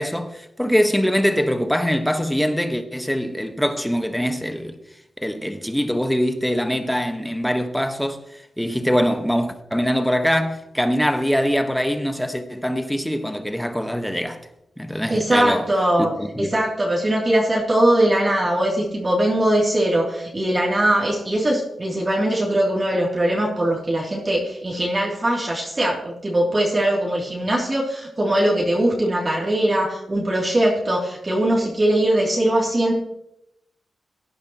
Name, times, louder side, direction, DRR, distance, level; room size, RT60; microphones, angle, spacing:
voice 1, 0.0-4.8 5.2-14.4 14.8-15.7 16.0-16.6, equal, 5° left, 1.4 m, -23 dB
voice 2, 15.1-16.1 16.4-32.9, right 1 dB, 35° right, 3.1 m, -21 dB
17.0 x 10.0 x 3.1 m
cardioid pair, 55°, 0 cm